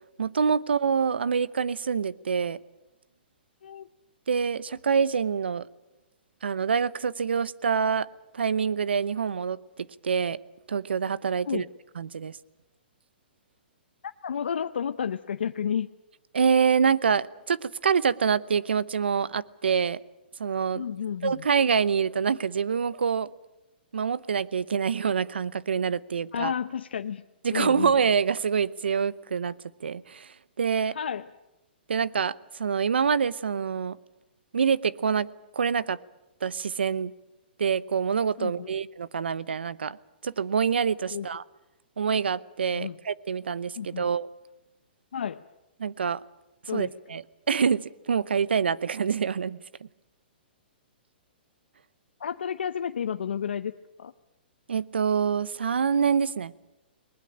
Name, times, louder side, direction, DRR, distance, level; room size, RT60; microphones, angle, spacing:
voice 1, 0.2-2.6 4.3-5.7 6.4-8.1 8.3-10.4 10.7-11.6 12.0-12.4 16.3-20.0 20.4-20.8 21.2-23.3 23.9-26.5 27.4-29.5 29.8-31.0 31.9-34.0 34.5-35.3 35.5-36.0 36.4-37.1 37.6-40.0 40.2-41.4 42.0-44.3 45.8-46.2 46.7-49.9 54.7-56.5, right 6 dB, 85° right, 19 dB, 0.8 m, -26 dB
voice 2, 14.2-15.9 20.7-21.5 26.3-27.2 27.5-27.9 30.9-31.3 38.4-38.7 41.1-41.3 42.7-43.0 43.8-44.1 45.1-45.4 46.7-46.9 52.2-53.7 54.0-54.1, left 8 dB, 80° left, 9 dB, 0.7 m, -31 dB
21.0 x 19.5 x 8.9 m, 0.96 s
hypercardioid pair, 140°, 6 cm